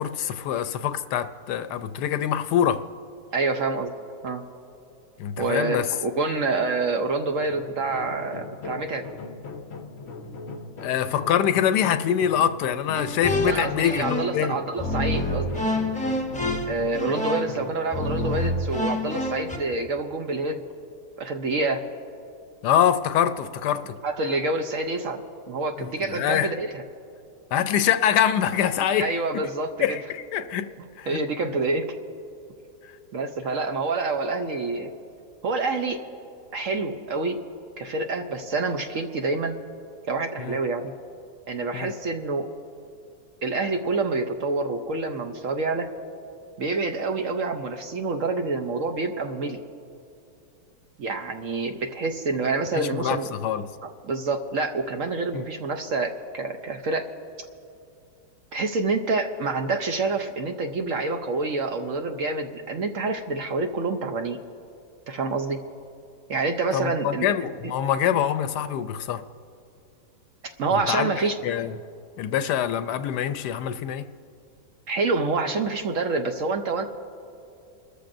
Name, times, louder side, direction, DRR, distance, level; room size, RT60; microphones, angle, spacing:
voice 1, 0.0-2.8 5.2-5.9 10.8-14.6 22.6-23.9 25.8-26.5 27.5-29.2 29.8-30.7 31.0-31.2 32.8-32.9 40.4-40.6 41.7-41.9 52.7-53.6 55.3-55.5 66.7-69.2 70.7-71.7 72.2-74.1, left 9 dB, 75° left, 11 dB, 1.1 m, -25 dB
voice 2, 3.3-3.9 4.2-4.4 5.4-9.0 13.5-15.6 16.7-20.6 21.2-21.8 24.0-25.2 25.5-26.8 28.9-30.0 31.1-31.9 33.1-34.9 35.4-36.0 36.5-37.4 37.8-39.6 40.1-40.9 41.5-42.5 43.4-45.9 46.6-49.6 51.0-53.3 53.8-57.1 58.5-64.4 65.1-65.6 66.3-67.3 70.6-71.4 74.9-76.8, right 3 dB, 60° right, 5 dB, 0.9 m, -27 dB
sound 1, 7.4-17.7, left 3 dB, 55° left, 0.7 m, -39 dB
sound 2, 12.9-14.4 14.8-19.6, left 1 dB, 10° left, 0.5 m, -28 dB
28.5 x 13.5 x 2.6 m, 2.7 s
omnidirectional pair, 1.9 m